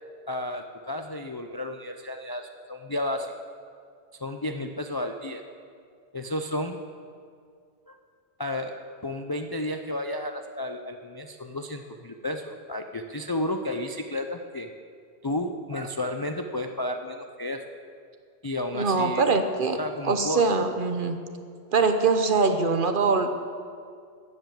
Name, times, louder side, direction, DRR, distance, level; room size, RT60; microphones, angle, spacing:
voice 1, 0.3-3.3 4.2-5.4 6.1-6.8 7.9-8.0 8.4-8.8 9.0-14.7 15.2-17.6 18.4-19.3 19.8-20.6, left 1 dB, 30° left, 5 dB, 0.4 m, -32 dB
voice 2, 18.7-19.8 20.0-21.2 21.7-23.3, right 4 dB, 50° right, 7 dB, 1.0 m, -23 dB
14.0 x 8.1 x 7.7 m, 2.2 s
omnidirectional pair, 1.1 m